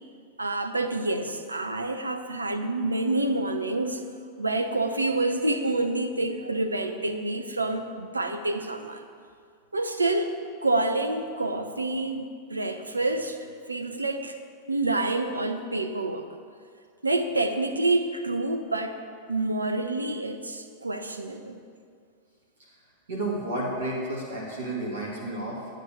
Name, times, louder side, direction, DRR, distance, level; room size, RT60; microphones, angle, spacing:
voice 1, 0.4-4.0 4.4-9.1 9.7-10.4 10.6-14.4 14.7-16.3 17.0-18.9 19.3-21.6, right 2 dB, 80° right, 7 dB, 0.7 m, -28 dB
voice 2, 23.1-25.7, right 1 dB, 65° right, -6 dB, 2.3 m, -31 dB
9.4 x 5.0 x 7.4 m, 2.1 s
figure-of-eight pair, 90°, 0 cm